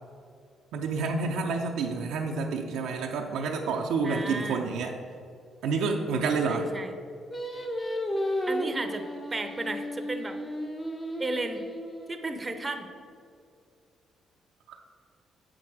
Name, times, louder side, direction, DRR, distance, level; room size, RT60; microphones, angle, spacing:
voice 1, 0.7-4.9 5.6-6.7 14.7-14.8, right 4 dB, 85° right, 1 dB, 0.6 m, -29 dB
voice 2, 4.0-4.7 6.2-6.9 8.5-9.1 9.3-10.4 11.2-11.7 12.1-12.9, right 2 dB, 25° right, 7 dB, 0.7 m, -34 dB
Singing, 7.3-12.6, equal, 25° left, 1.0 m, -33 dB
7.9 x 6.1 x 4.8 m, 2.4 s
cardioid pair, 90°, 0 cm